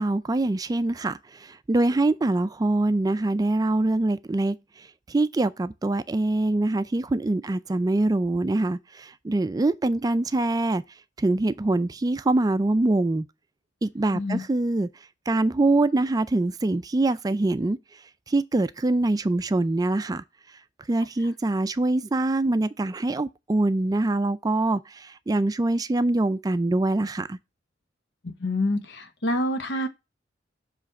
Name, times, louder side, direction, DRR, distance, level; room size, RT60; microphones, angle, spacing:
voice 1, 0.0-10.8 11.2-13.3 13.8-14.9 15.3-17.8 18.3-20.2 20.9-27.4, right 2 dB, 20° right, 0.3 m, -24 dB
voice 2, 28.4-29.9, left 1 dB, 75° left, 1.1 m, -26 dB
7.5 x 3.2 x 5.9 m
head